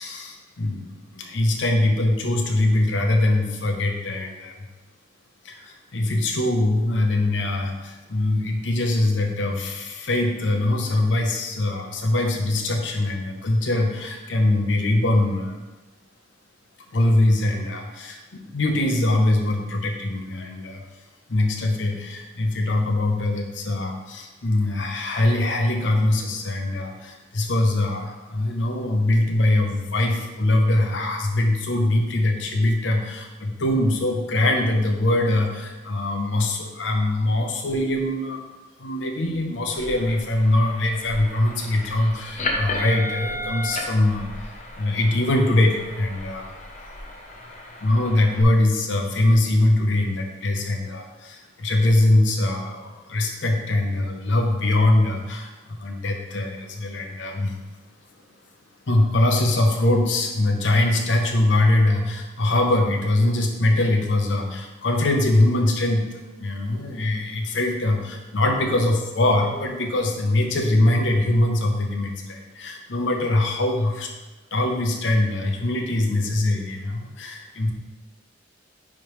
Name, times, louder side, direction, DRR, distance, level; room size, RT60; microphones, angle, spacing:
voice 1, 0.0-4.7 5.4-15.6 16.9-20.8 21.3-38.5 38.8-46.5 47.8-57.6 58.9-74.1 74.5-77.7, left 1 dB, 80° left, 2 dB, 0.8 m, -22 dB
sound 1, 39.7-48.4, left 1 dB, 40° left, 0.8 m, -34 dB
9.5 x 3.6 x 3.1 m, 1.1 s
head